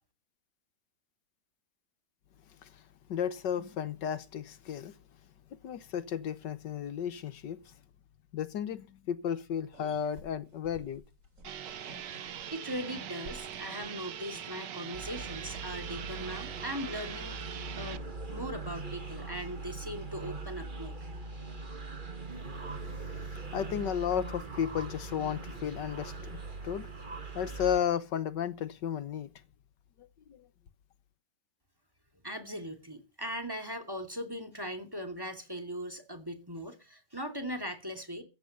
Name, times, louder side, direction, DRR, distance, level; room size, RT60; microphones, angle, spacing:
voice 1, 3.1-5.0 5.6-7.7 8.3-11.0 22.3-29.3 30.0-30.5, left 8 dB, 75° left, 1.7 m, -34 dB
sound 1, 9.7-15.8, right 1 dB, 45° right, 3.4 m, -53 dB
sound 2, 11.4-18.0, right 10 dB, 75° right, 1.6 m, -42 dB
voice 2, 12.5-17.4 17.8-18.0 18.3-21.0 32.2-38.2, equal, 10° right, 2.9 m, -39 dB
sound 3, 14.9-27.8, right 3 dB, 30° right, 2.1 m, -41 dB
15.0 x 9.1 x 6.7 m
omnidirectional pair, 1.9 m